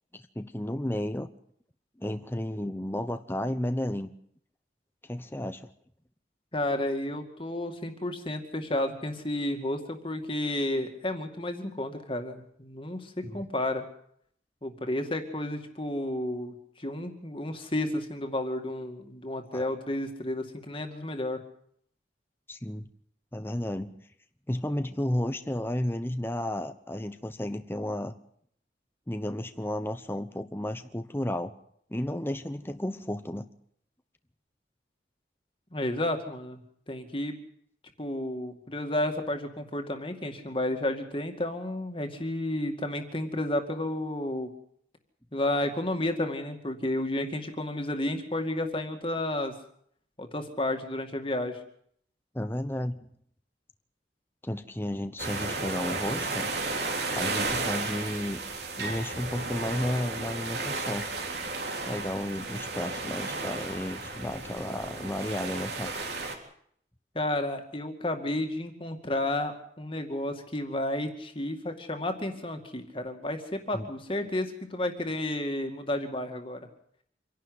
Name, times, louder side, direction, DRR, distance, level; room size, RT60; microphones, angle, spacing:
voice 1, 0.1-1.3 2.0-4.1 5.1-5.7 13.2-13.4 19.5-19.7 22.5-22.9 23.3-23.9 24.5-28.1 29.1-31.5 31.9-33.5 52.3-53.1 54.4-56.5 57.1-58.4 58.8-61.1 61.5-65.9 73.7-73.9, left 1 dB, 10° left, 9 dB, 0.8 m, -33 dB
voice 2, 6.5-13.8 14.6-21.4 35.7-36.6 36.9-37.4 38.0-44.5 45.3-49.5 50.2-51.6 67.1-76.6, left 1 dB, 30° left, 6 dB, 2.3 m, -31 dB
sound 1, 55.2-66.4, right 3 dB, 70° right, 3.7 m, -33 dB
26.5 x 11.5 x 9.7 m, 0.66 s
head